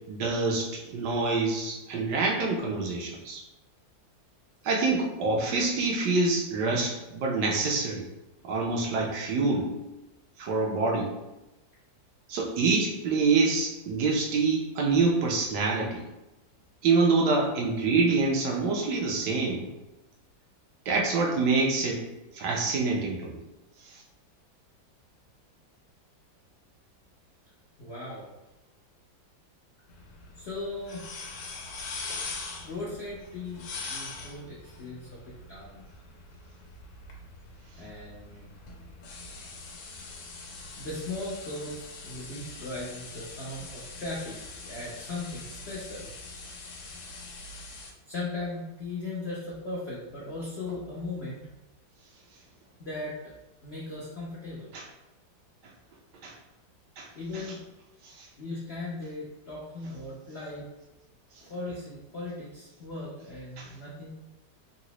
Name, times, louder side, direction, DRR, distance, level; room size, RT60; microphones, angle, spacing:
voice 1, 0.1-3.4 4.6-8.1 8.4-9.7 10.4-11.1 12.3-16.0 16.8-19.7 20.9-22.0 22.3-23.3 23.8-24.0 54.7-54.8 56.2-56.3 57.0-57.1 58.0-58.3 63.6-63.7, right 3 dB, 70° right, -1 dB, 1.1 m, -26 dB
voice 2, 27.8-28.2 30.4-31.0 32.6-33.6 33.9-35.2 35.5-35.9 37.7-38.5 40.8-41.7 42.0-44.4 44.6-46.1 48.1-51.4 52.8-53.2 53.6-54.7 57.1-57.6 58.4-60.6 61.4-64.1, left 2 dB, 70° left, -6 dB, 0.6 m, -37 dB
sound 1, 29.9-47.9, left 3 dB, 85° left, 1.4 m, -43 dB
3.8 x 2.0 x 2.9 m, 0.98 s
omnidirectional pair, 2.0 m